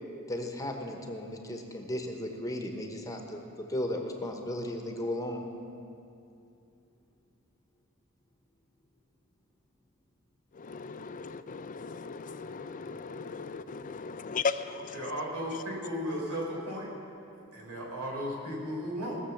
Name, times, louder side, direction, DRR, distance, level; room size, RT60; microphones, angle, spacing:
voice 1, 0.3-3.4 3.7-5.4, left 1 dB, 15° left, 3 dB, 1.1 m, -35 dB
voice 2, 10.5-15.1 15.5-15.6, left 5 dB, 35° left, 11 dB, 0.4 m, -37 dB
voice 3, 14.9-16.9 17.5-19.2, equal, 85° right, -3 dB, 3.8 m, -35 dB
20.0 x 6.8 x 7.1 m, 2.6 s
head